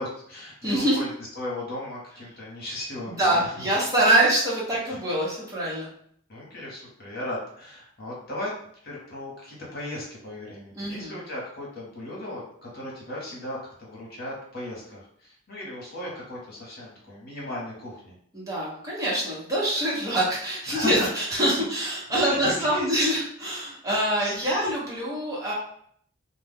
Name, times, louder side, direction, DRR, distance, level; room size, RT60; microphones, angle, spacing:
voice 1, 0.0-3.5 6.3-8.5 8.8-18.1 20.7-21.1 22.1-22.8 24.4-24.6, left 1 dB, 50° left, -4 dB, 1.1 m, -36 dB
voice 2, 0.6-1.0 3.1-5.9 10.8-11.2 18.3-25.5, right 1 dB, 15° right, -6 dB, 1.0 m, -25 dB
2.4 x 2.1 x 3.5 m, 0.64 s
head